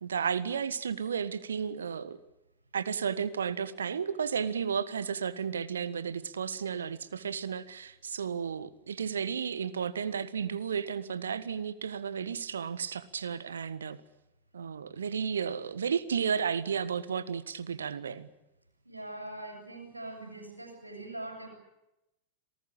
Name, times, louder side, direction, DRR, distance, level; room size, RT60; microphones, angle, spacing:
voice 1, 0.0-2.2 2.7-14.0 14.5-18.3, right 7 dB, 70° right, 17 dB, 1.5 m, -33 dB
voice 2, 18.8-21.5, right 1 dB, 85° right, 5 dB, 7.1 m, -42 dB
27.5 x 19.5 x 8.7 m, 0.92 s
figure-of-eight pair, 90°, 0 cm